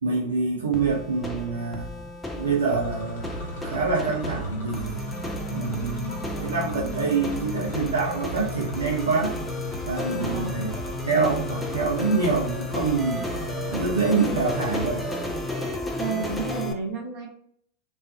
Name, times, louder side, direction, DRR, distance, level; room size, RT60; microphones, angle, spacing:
voice 1, 0.0-1.9 2.4-3.3 3.6-5.0 5.5-9.3 9.8-13.3 13.7-15.1, right 4 dB, 75° right, -2 dB, 0.5 m, -26 dB
sound 1, 0.7-16.7, left 2 dB, 10° left, 0.4 m, -33 dB
sound 2, 2.4-15.8, right 1 dB, 70° left, 0.8 m, -38 dB
voice 2, 10.1-10.7 16.0-17.3, right 4 dB, 45° right, 0 dB, 0.8 m, -31 dB
2.4 x 2.3 x 2.3 m, 0.67 s
figure-of-eight pair, 90°, 0 cm